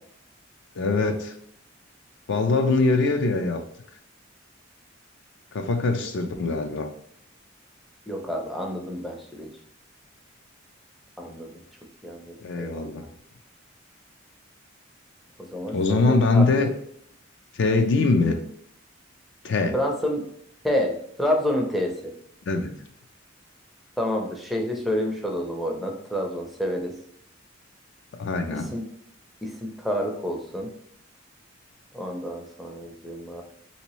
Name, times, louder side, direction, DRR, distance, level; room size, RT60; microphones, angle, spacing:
voice 1, 0.8-1.3 2.3-3.6 5.5-6.9 12.4-13.0 15.7-16.7 17.6-18.4 19.4-19.7 22.5-22.7 28.2-28.7, left 3 dB, 60° left, 6 dB, 0.4 m, -22 dB
voice 2, 8.1-9.5 11.2-11.5 12.0-12.9 15.4-16.5 19.7-20.2 20.6-22.1 24.0-26.9 28.5-28.8 29.4-30.7 31.9-33.4, equal, ahead, 1 dB, 0.5 m, -29 dB
3.4 x 2.8 x 3.0 m, 0.69 s
head